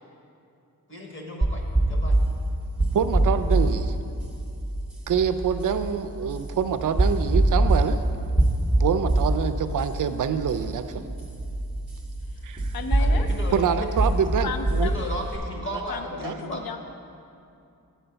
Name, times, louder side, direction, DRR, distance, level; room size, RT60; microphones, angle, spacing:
voice 1, 0.9-2.2 13.0-13.9 14.8-16.6, equal, 35° left, 0 dB, 1.2 m, -35 dB
sound 1, 1.4-15.4, right 1 dB, ahead, 0.8 m, -25 dB
voice 2, 2.9-3.9 5.1-8.0 8.8-11.1 12.4-12.7 13.5-14.5 14.8-14.9 16.2-16.3, right 7 dB, 60° right, 11 dB, 0.5 m, -25 dB
voice 3, 12.7-13.3 14.4-14.9 15.9-16.8, left 6 dB, 75° left, 7 dB, 0.6 m, -33 dB
8.8 x 4.5 x 6.8 m, 2.6 s
wide cardioid pair, 140°, 36 cm